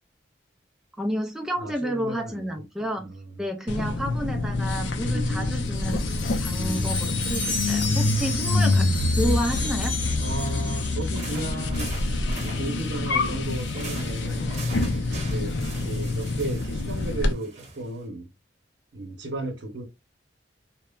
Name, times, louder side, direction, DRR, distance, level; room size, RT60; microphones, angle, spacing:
voice 1, 1.0-3.1 3.4-10.0, equal, 5° right, 0.3 m, -31 dB
voice 2, 1.6-2.5 3.0-3.4 5.0-5.6 6.5-6.9 8.0-8.5 10.2-14.5 15.2-18.3 18.9-19.8, right 1 dB, 70° right, 0.9 m, -35 dB
sound 1, 3.7-17.3, left 2 dB, 80° left, 0.5 m, -26 dB
Wind chime, 5.3-11.5, left 3 dB, 45° left, 0.8 m, -33 dB
sound 2, 11.0-18.1, right 3 dB, 40° right, 0.8 m, -42 dB
2.9 x 2.1 x 2.2 m
head